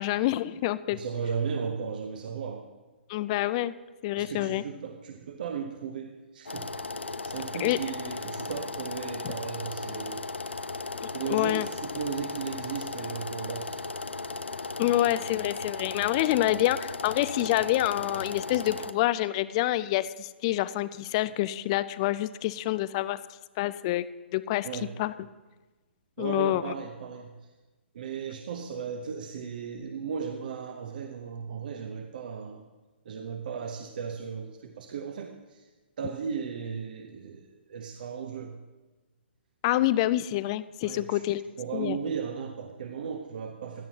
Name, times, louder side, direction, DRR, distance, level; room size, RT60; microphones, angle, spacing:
voice 1, 0.0-1.0 3.1-3.7 4.0-4.6 7.6-7.8 11.3-11.7 14.8-23.2 23.6-24.1 24.3-25.1 26.2-26.7 39.6-41.4 41.7-42.0, left 15 dB, 30° left, 16 dB, 0.4 m, -27 dB
voice 2, 0.9-2.7 4.2-6.7 7.0-10.3 11.1-13.8 24.6-24.9 26.2-27.3 27.9-32.7 33.1-35.6 36.0-38.6 40.8-41.2 41.6-43.9, right 6 dB, 50° right, 5 dB, 0.8 m, -36 dB
sound 1, 6.5-18.9, left 3 dB, 75° left, 0.6 m, -36 dB
16.5 x 12.0 x 2.9 m, 1.2 s
figure-of-eight pair, 125°, 6 cm